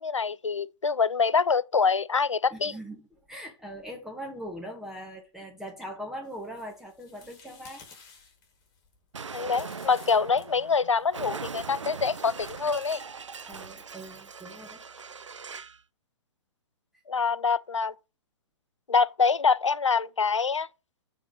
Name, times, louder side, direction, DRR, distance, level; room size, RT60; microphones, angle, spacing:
voice 1, 0.0-2.7 9.3-13.0 17.1-17.9 18.9-20.7, left 5 dB, 85° left, 0.4 m, -25 dB
voice 2, 2.5-8.0 13.5-15.1, equal, 5° right, 1.2 m, -41 dB
sound 1, 6.2-11.3 12.2-13.6, left 5 dB, 25° left, 1.9 m, -54 dB
Explosion, 9.1-15.8, right 5 dB, 80° right, 0.4 m, -41 dB
6.1 x 4.1 x 5.2 m
figure-of-eight pair, 120°, 15 cm